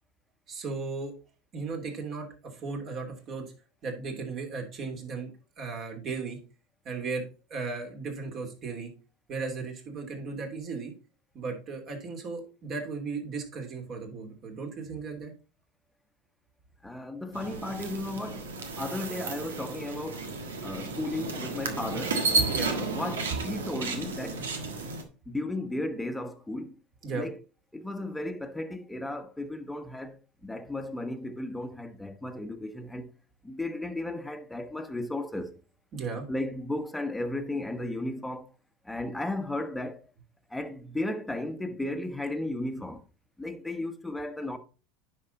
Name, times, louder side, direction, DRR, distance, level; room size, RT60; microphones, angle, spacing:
voice 1, 0.5-1.1 1.5-3.4 3.8-6.4 6.8-8.9 9.3-10.9 11.3-15.3 22.3-22.8 27.0-27.3 35.9-36.3, right 4 dB, 45° right, 3.0 m, -36 dB
voice 2, 16.8-18.5 18.8-20.3 20.6-22.2 22.7-24.5 25.3-26.8 27.1-27.4 27.7-33.1 33.4-35.5 36.3-38.5 38.8-40.0 40.5-43.0 43.4-44.6, left 1 dB, 5° left, 1.1 m, -35 dB
sound 1, 17.3-25.0, right 3 dB, 85° right, 1.4 m, -32 dB
9.8 x 5.5 x 3.9 m
hypercardioid pair, 85°, 0 cm